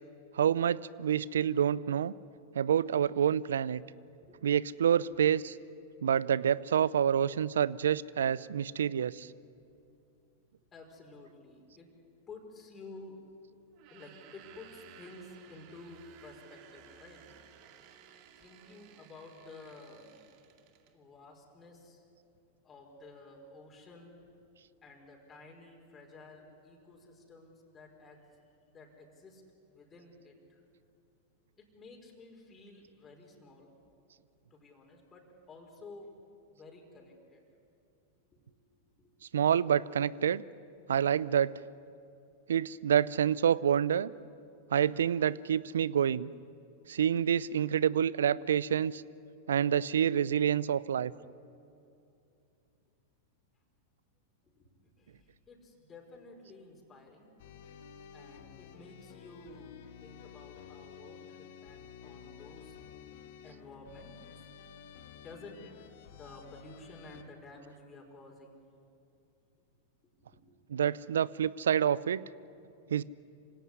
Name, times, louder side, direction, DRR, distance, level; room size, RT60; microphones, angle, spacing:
voice 1, 0.3-2.1 2.5-3.8 4.4-5.6 6.0-9.3 39.3-40.4 40.9-41.6 42.5-44.1 44.7-46.3 46.9-49.0 49.5-51.1 70.7-72.2 72.9-73.0, right 9 dB, 80° right, 20 dB, 0.6 m, -27 dB
voice 2, 10.7-11.9 12.3-13.2 13.9-17.2 18.4-20.2 20.9-22.1 22.6-24.2 24.8-28.2 28.7-29.4 29.7-30.6 31.6-33.7 34.5-36.1 36.5-37.5 38.3-38.4 39.0-39.1 54.4-54.7 55.0-57.3 58.1-62.8 63.4-64.5 65.1-68.7 70.0-70.4, left 2 dB, 25° left, 0 dB, 5.2 m, -52 dB
sound 1, 13.7-21.0, right 9 dB, 50° right, 2.2 m, -57 dB
sound 2, 57.4-67.2, left 8 dB, 60° left, 1.5 m, -52 dB
26.0 x 17.5 x 10.0 m, 2.6 s
hypercardioid pair, 100°, 0 cm